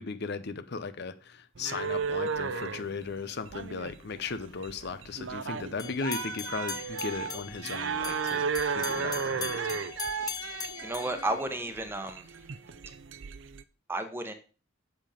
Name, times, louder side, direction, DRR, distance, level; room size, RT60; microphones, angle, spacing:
voice 1, 0.0-9.8, left 4 dB, 60° left, 12 dB, 0.7 m, -37 dB
sound 1, 1.6-13.6, right 6 dB, 70° right, 0.6 m, -34 dB
sound 2, 5.8-12.0, left 7 dB, 20° left, 0.4 m, -41 dB
voice 2, 10.8-12.3 13.9-14.3, right 1 dB, 10° right, 7 dB, 1.1 m, -32 dB
8.0 x 7.3 x 5.1 m, 0.37 s
head